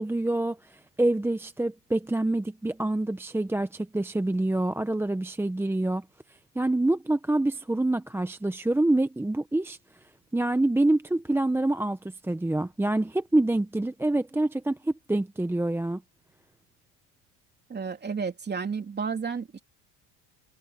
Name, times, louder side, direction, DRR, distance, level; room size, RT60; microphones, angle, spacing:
voice 1, 0.0-16.0, right 2 dB, 5° right, 1.0 m, -26 dB
voice 2, 17.7-19.6, right 5 dB, 25° right, 3.4 m, -32 dB
supercardioid pair, 105°, 39 cm